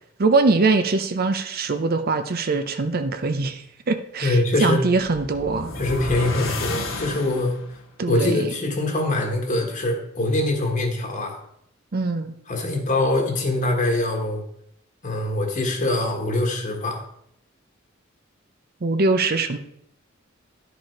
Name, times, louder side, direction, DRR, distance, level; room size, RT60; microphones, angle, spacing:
voice 1, 0.2-5.7 8.0-8.4 11.9-12.3 18.8-19.6, right 3 dB, 50° right, 9 dB, 0.6 m, -22 dB
voice 2, 4.2-4.8 5.7-7.6 8.1-11.4 12.5-14.4 15.0-17.0, left 2 dB, 40° left, 2 dB, 1.5 m, -23 dB
sound 1, 5.0-7.8, left 3 dB, 70° left, 1.8 m, -31 dB
10.5 x 5.1 x 4.5 m, 0.73 s
head